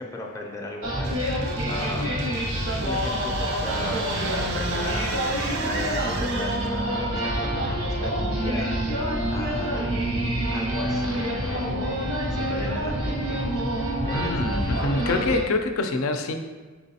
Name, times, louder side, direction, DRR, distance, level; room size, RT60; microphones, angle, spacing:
voice 1, 0.0-2.3 2.8-10.0 10.5-14.3 14.8-15.0, left 1 dB, 15° left, -1 dB, 0.4 m, -37 dB
sound 1, 0.8-15.4, equal, 90° right, 1.1 m, -27 dB
sound 2, 1.0-7.0, right 4 dB, 50° right, 0.4 m, -36 dB
voice 2, 14.1-16.3, left 3 dB, 75° left, 6 dB, 0.4 m, -26 dB
4.5 x 3.9 x 2.8 m, 1.4 s
head